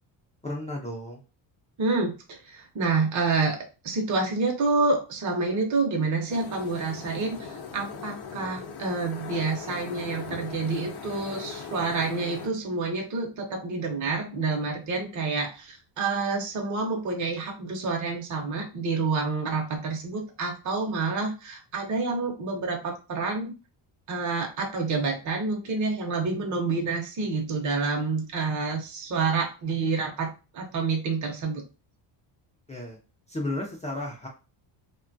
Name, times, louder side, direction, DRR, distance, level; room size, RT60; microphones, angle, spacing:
voice 1, 0.4-1.2 32.7-33.0 33.3-34.3, left 1 dB, 15° left, -2 dB, 0.3 m, -33 dB
voice 2, 1.8-3.6 3.8-23.5 24.1-31.6, right 3 dB, 40° right, 1 dB, 0.7 m, -28 dB
sound 1, 6.3-12.5, left 5 dB, 55° left, 0.6 m, -39 dB
2.8 x 2.2 x 2.5 m, 0.32 s
cardioid pair, 145°, 48 cm